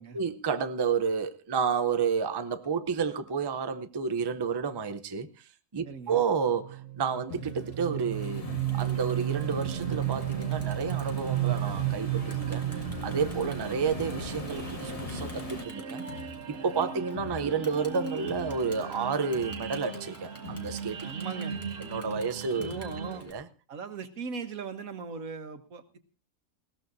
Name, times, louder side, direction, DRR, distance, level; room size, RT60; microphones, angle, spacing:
voice 1, 0.1-8.4 8.7-16.0 16.5-21.1 21.8-22.7 23.2-23.4, right 6 dB, 30° right, 0.5 m, -30 dB
voice 2, 5.8-6.2 21.0-21.6 22.5-23.3 23.7-26.0, right 5 dB, 85° right, 1.7 m, -39 dB
sound 1, 6.4-23.2, right 11 dB, 60° right, 1.1 m, -35 dB
Crowd, 7.3-23.3, left 3 dB, 10° left, 2.3 m, -46 dB
sound 2, 8.1-15.7, left 3 dB, 30° left, 1.2 m, -42 dB
20.0 x 17.0 x 2.7 m
omnidirectional pair, 1.4 m